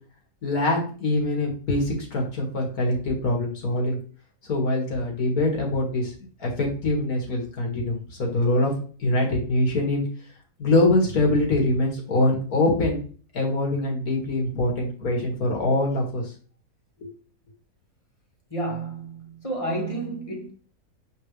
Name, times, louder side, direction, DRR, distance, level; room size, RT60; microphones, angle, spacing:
voice 1, 0.4-4.0 4.4-6.1 6.4-8.7 9.0-10.0 10.6-13.0 13.3-16.3 17.0-17.1, left 2 dB, 85° left, 2.5 m, -24 dB
voice 2, 18.5-20.5, right 2 dB, 25° left, 1.6 m, -30 dB
7.7 x 4.5 x 3.2 m
omnidirectional pair, 1.5 m